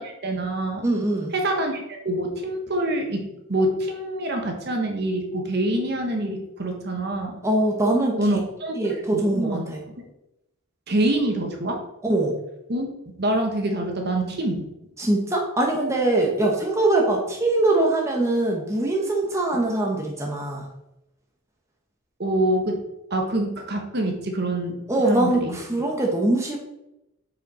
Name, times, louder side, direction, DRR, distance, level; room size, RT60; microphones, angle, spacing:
voice 1, 0.0-0.8 1.3-7.4 8.2-9.7 10.9-11.8 12.7-12.9 13.2-14.7 19.5-19.6 22.2-22.8 23.1-24.8 25.0-25.6, right 1 dB, 45° right, 3 dB, 1.1 m, -26 dB
voice 2, 0.8-1.3 7.4-8.2 8.7-9.8 12.0-12.4 15.0-20.7 24.9-26.6, right 2 dB, 15° right, -1 dB, 0.9 m, -22 dB
6.5 x 5.0 x 4.2 m, 0.89 s
head